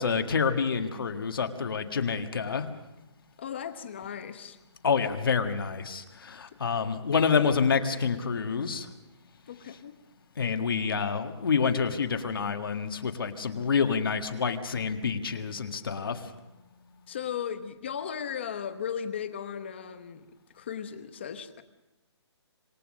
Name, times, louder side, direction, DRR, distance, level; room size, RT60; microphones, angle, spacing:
voice 1, 0.0-2.7 4.8-8.9 10.4-16.3, left 6 dB, 50° left, 7 dB, 1.7 m, -28 dB
voice 2, 3.4-4.6 9.5-10.0 17.1-20.3 20.5-21.6, left 8 dB, 25° left, 10 dB, 1.0 m, -36 dB
27.0 x 18.0 x 6.5 m, 1.0 s
hypercardioid pair, 180°, 15 cm